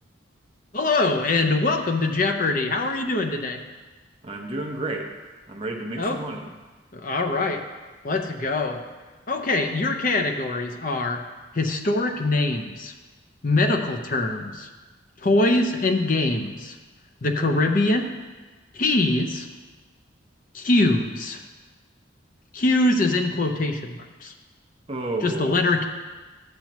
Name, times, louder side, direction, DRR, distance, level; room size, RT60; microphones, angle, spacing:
voice 1, 0.7-3.6 6.0-6.2 6.9-7.6 8.0-8.8 9.3-11.2 11.5-12.9 13.4-14.7 15.2-16.8 17.2-18.1 18.7-19.5 20.5-21.4 22.5-24.3 25.2-25.8, left 2 dB, 45° left, 4 dB, 0.6 m, -23 dB
voice 2, 4.2-5.1 5.5-6.5 24.9-25.6, right 2 dB, 30° right, 2 dB, 0.8 m, -31 dB
13.0 x 7.3 x 3.0 m, 1.3 s
head